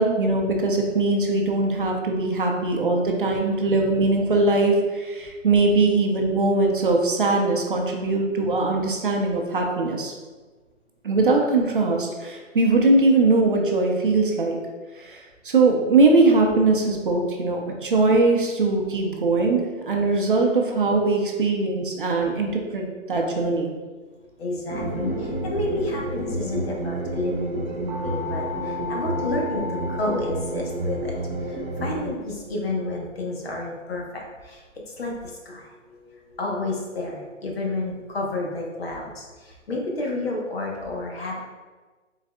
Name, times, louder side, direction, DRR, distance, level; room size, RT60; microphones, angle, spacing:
voice 1, 0.0-10.1 11.0-14.6 15.0-23.7, right 3 dB, 45° right, 1 dB, 0.6 m, -21 dB
voice 2, 24.2-41.4, left 2 dB, 50° left, -1 dB, 1.0 m, -31 dB
sound 1, 24.7-32.1, right 1 dB, 25° right, 1.1 m, -29 dB
5.0 x 4.0 x 2.2 m, 1.3 s
hypercardioid pair, 160°, 38 cm